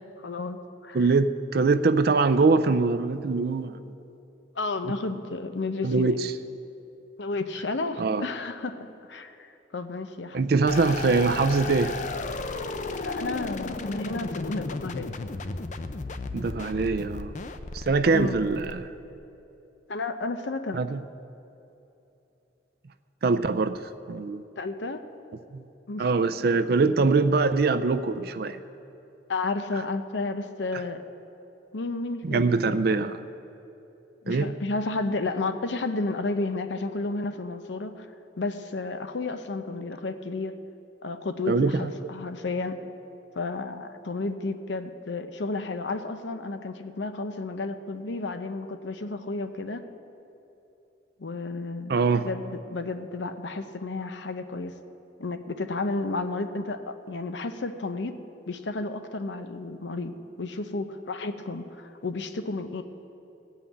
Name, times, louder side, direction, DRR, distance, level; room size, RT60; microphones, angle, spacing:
voice 1, 0.2-0.6 0.8-1.1 4.6-6.2 7.2-9.4 9.7-10.4 13.0-15.1 18.1-18.4 19.9-20.8 24.6-25.0 25.9-26.1 26.4-26.5 29.3-31.0 31.7-33.0 34.2-38.1 38.4-40.6 41.0-42.8 43.3-49.8 51.2-51.9 52.2-54.7 55.2-58.1 58.5-62.8, left 3 dB, 85° left, 9 dB, 0.7 m, -32 dB
voice 2, 0.9-3.8 4.8-4.9 5.8-6.3 8.0-8.2 10.3-11.9 16.3-17.3 17.7-18.9 20.7-21.0 23.2-23.8 24.1-24.4 25.5-25.6 26.0-28.6 32.2-33.2 34.3-34.5 41.5-41.8 42.2-42.3 51.9-52.3, right 4 dB, 55° right, 11 dB, 0.4 m, -23 dB
sound 1, 10.7-19.1, left 3 dB, 45° left, 0.5 m, -34 dB
16.5 x 5.7 x 8.5 m, 2.9 s
head